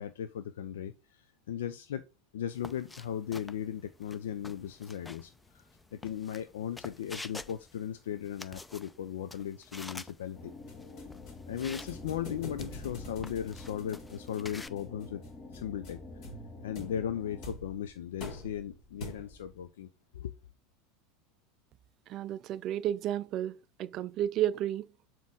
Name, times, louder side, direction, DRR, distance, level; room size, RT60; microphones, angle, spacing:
voice 1, 0.0-2.0 2.3-5.6 5.9-10.5 11.5-15.2 15.5-16.0 16.6-19.9 20.1-20.3, left 9 dB, 65° left, 0.4 m, -37 dB
sound 1, 2.5-14.7, left 2 dB, 10° left, 0.5 m, -49 dB
sound 2, 10.3-17.5, left 3 dB, 30° left, 1.2 m, -48 dB
sound 3, 10.7-19.6, left 1 dB, 50° left, 2.7 m, -46 dB
voice 2, 22.1-23.5 23.8-24.9, right 11 dB, 45° right, 0.4 m, -32 dB
7.3 x 4.5 x 3.7 m
figure-of-eight pair, 80°, 0 cm